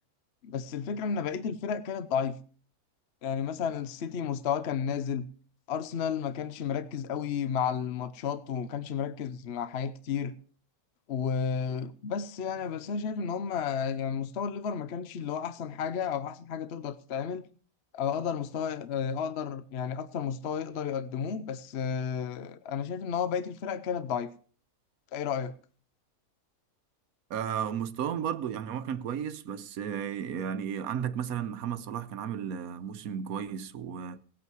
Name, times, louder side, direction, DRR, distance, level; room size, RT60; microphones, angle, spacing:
voice 1, 0.4-2.4 3.2-5.3 5.7-10.3 11.1-17.5 17.9-24.3 25.1-25.5, left 7 dB, 55° left, 0.9 m, -32 dB
voice 2, 27.3-34.2, right 8 dB, 80° right, 1.3 m, -34 dB
18.5 x 8.2 x 4.6 m
omnidirectional pair, 1.5 m